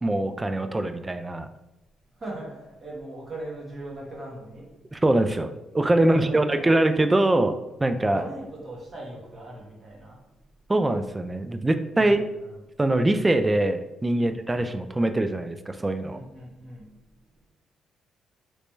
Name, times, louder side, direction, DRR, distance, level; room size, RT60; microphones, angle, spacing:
voice 1, 0.0-1.5 4.9-8.2 10.7-12.2 12.8-16.2, right 1 dB, 20° right, 9 dB, 0.3 m, -23 dB
voice 2, 2.1-4.7 6.0-6.7 8.1-10.2 11.9-12.5 14.1-14.4 16.0-17.2, right 1 dB, 40° right, -3 dB, 1.3 m, -39 dB
3.3 x 3.0 x 3.1 m, 1.0 s
cardioid pair, 90°, 0 cm